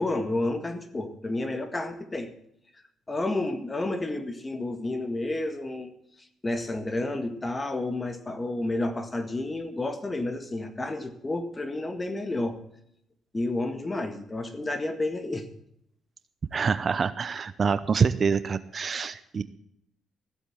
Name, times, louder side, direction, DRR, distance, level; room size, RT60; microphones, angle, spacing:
voice 1, 0.0-2.3 3.1-5.9 6.4-12.6 13.3-15.5, left 2 dB, 20° left, 8 dB, 1.9 m, -30 dB
voice 2, 16.5-19.4, right 5 dB, 45° right, 14 dB, 0.7 m, -26 dB
15.0 x 8.3 x 7.3 m, 0.74 s
cardioid pair, 90°, 0 cm